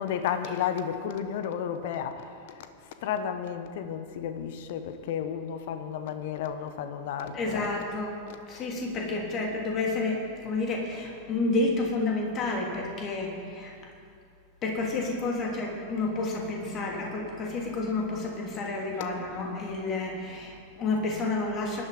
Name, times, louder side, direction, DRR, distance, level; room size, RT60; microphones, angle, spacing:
voice 1, 0.0-7.7 8.3-8.7 10.4-10.5 19.3-19.6, left 8 dB, 50° left, 9 dB, 1.1 m, -33 dB
voice 2, 7.3-8.2 8.5-13.7 14.6-21.8, left 3 dB, 30° left, 0 dB, 3.1 m, -30 dB
18.0 x 11.5 x 5.3 m, 2.3 s
figure-of-eight pair, 90°, 0 cm